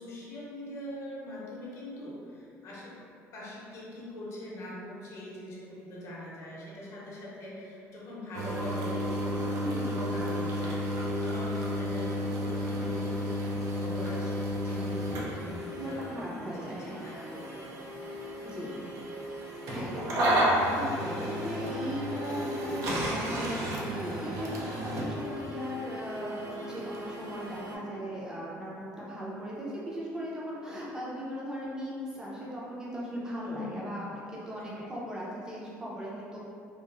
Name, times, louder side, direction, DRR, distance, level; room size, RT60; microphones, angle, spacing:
voice 1, 0.0-2.9 3.3-13.4 13.7-17.6 18.6-18.7 30.6-30.7 33.4-34.0 34.6-34.9, left 1 dB, 60° left, -5 dB, 0.7 m, -42 dB
sound 1, 8.3-27.8, equal, 65° right, 0.5 m, -32 dB
voice 2, 15.8-16.9 18.4-18.7 19.6-36.4, equal, 10° right, -6 dB, 0.5 m, -38 dB
2.8 x 2.0 x 2.4 m, 2.4 s
cardioid pair, 110°, 6 cm